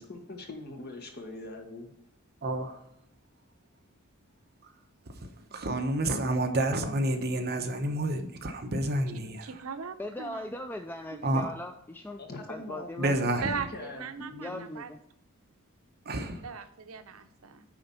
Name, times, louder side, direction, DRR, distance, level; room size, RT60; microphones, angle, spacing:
voice 1, 0.0-1.9 12.2-14.7, left 2 dB, 50° left, 1.7 m, -42 dB
voice 2, 2.4-2.8 5.1-9.5 11.2-11.5 13.0-13.5 16.1-16.4, right 1 dB, 50° right, 1.0 m, -29 dB
voice 3, 9.4-10.6 11.1-11.2 13.4-14.9 16.4-17.6, right 6 dB, 85° right, 0.7 m, -39 dB
voice 4, 10.0-12.2 12.5-13.3 14.4-15.0, left 1 dB, 10° left, 0.4 m, -39 dB
9.5 x 3.9 x 5.6 m
head